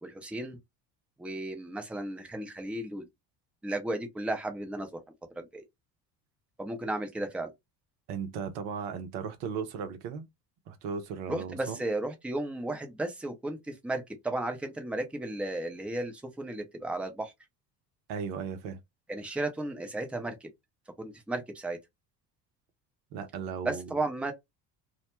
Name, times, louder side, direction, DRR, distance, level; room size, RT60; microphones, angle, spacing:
voice 1, 0.0-0.6 1.2-3.0 3.6-4.9 5.4-5.6 6.6-7.5 11.3-17.3 19.1-20.5 21.0-21.8 23.6-24.3, right 2 dB, ahead, 0.6 m, -34 dB
voice 2, 8.1-10.2 10.7-11.8 18.1-18.8 23.1-24.0, right 6 dB, 65° right, 0.7 m, -36 dB
2.2 x 2.1 x 3.0 m
hypercardioid pair, 65°, 49 cm